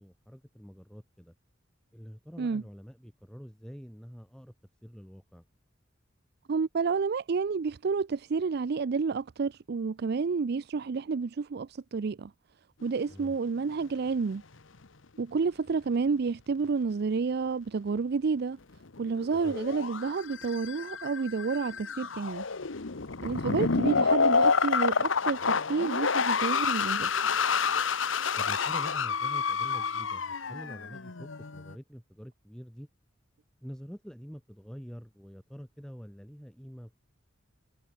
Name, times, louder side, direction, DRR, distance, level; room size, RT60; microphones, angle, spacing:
voice 1, 0.0-1.3 1.9-4.5 4.8-5.4 13.1-13.4 19.3-19.6 28.4-32.9 33.6-37.0, equal, 5° left, 7.1 m, -46 dB
voice 2, 6.5-12.3 12.8-14.4 15.2-18.6 19.0-22.4 23.2-27.1, right 5 dB, 55° right, 0.4 m, -30 dB
sound 1, 12.8-13.1 13.6-13.7 19.0-31.7, left 5 dB, 85° left, 1.2 m, -29 dB
head